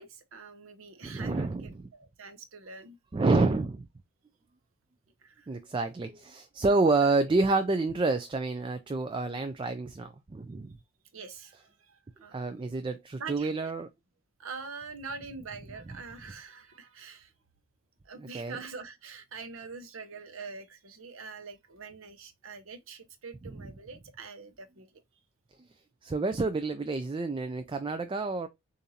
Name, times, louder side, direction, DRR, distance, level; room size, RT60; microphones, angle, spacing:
voice 1, 0.0-3.0 5.2-5.5 7.0-7.1 11.1-12.4 13.2-13.7 14.4-17.3 18.0-24.9, right 4 dB, 70° right, 0.8 m, -44 dB
voice 2, 1.0-1.7 3.1-3.9 5.5-10.7 12.3-13.9 18.1-18.6 23.5-23.7 26.0-28.5, right 3 dB, 25° right, 0.3 m, -28 dB
6.7 x 2.6 x 2.8 m
head